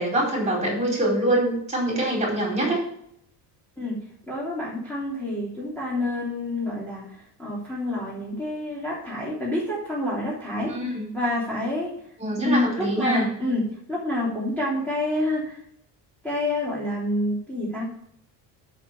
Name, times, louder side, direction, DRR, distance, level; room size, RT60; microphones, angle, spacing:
voice 1, 0.0-2.8 10.7-11.1 12.2-13.3, right 1 dB, 15° right, -3 dB, 4.5 m, -24 dB
voice 2, 4.3-11.9 12.4-15.6 16.2-17.9, left 1 dB, 5° left, -8 dB, 3.2 m, -28 dB
7.0 x 7.0 x 6.6 m, 0.68 s
cardioid pair, 145°, 43 cm